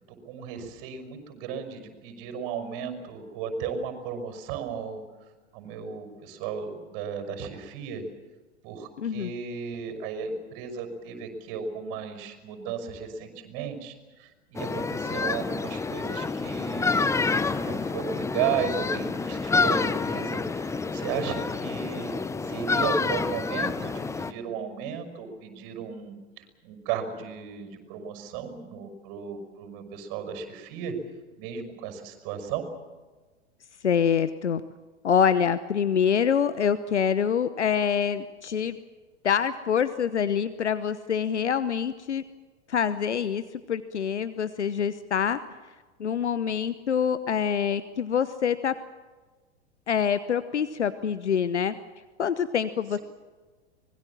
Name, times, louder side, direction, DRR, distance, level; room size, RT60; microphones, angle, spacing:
voice 1, 0.1-5.0 5.5-8.0 8.6-13.9 14.2-17.2 17.6-22.1 22.5-30.9 31.4-32.7, right 6 dB, 45° right, 7 dB, 5.8 m, -35 dB
voice 2, 9.0-9.3 33.8-34.6 35.0-38.8 39.2-42.2 42.7-45.4 46.0-48.7 49.9-51.8 52.2-53.0, left 7 dB, 75° left, 14 dB, 1.0 m, -25 dB
sound 1, 14.6-24.3, left 4 dB, 10° left, 0.9 m, -28 dB
25.5 x 21.0 x 7.3 m, 1.3 s
figure-of-eight pair, 95°, 35 cm